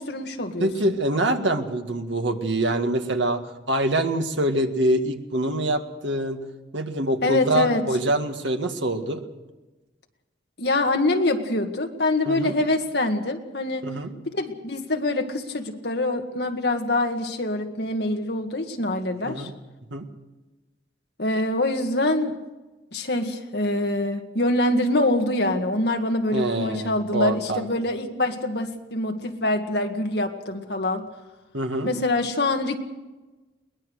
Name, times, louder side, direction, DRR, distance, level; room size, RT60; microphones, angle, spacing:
voice 1, 0.0-0.9 7.2-7.9 10.6-13.8 14.3-19.5 21.2-22.3 22.9-31.0 31.8-32.8, left 2 dB, 60° left, 4 dB, 1.9 m, -25 dB
voice 2, 0.6-3.4 3.7-6.4 6.7-9.2 12.3-12.6 13.8-14.1 19.2-19.5 19.9-20.0 26.3-27.7 31.5-31.9, right 1 dB, 75° right, 6 dB, 1.9 m, -25 dB
22.5 x 19.5 x 6.5 m, 1.2 s
head